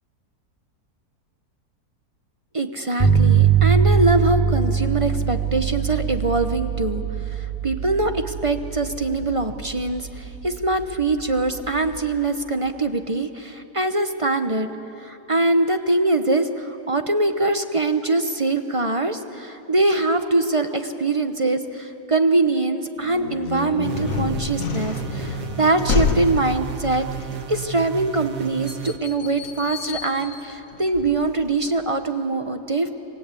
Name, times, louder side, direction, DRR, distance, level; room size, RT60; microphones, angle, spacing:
voice 1, 2.5-14.7 15.0-27.1 27.5-32.9, right 2 dB, 25° right, 8 dB, 0.7 m, -23 dB
sound 1, 3.0-12.0, right 7 dB, ahead, 3.3 m, -23 dB
sound 2, 23.0-31.7, left 5 dB, 55° left, 1.6 m, -29 dB
sound 3, 23.8-29.0, right 10 dB, 90° right, 1.5 m, -33 dB
26.5 x 20.5 x 8.4 m, 2.9 s
omnidirectional pair, 1.7 m